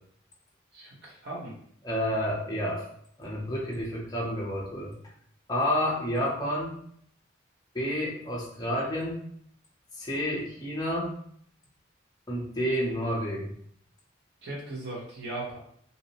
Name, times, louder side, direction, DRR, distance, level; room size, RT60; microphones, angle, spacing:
voice 1, 0.7-1.5 14.4-15.6, right 2 dB, 60° right, -5 dB, 0.9 m, -38 dB
voice 2, 1.8-2.8 3.2-4.9 5.5-6.8 7.7-9.2 10.0-11.1 12.3-13.5, equal, 20° left, -4 dB, 0.6 m, -30 dB
2.6 x 2.0 x 2.8 m, 0.65 s
head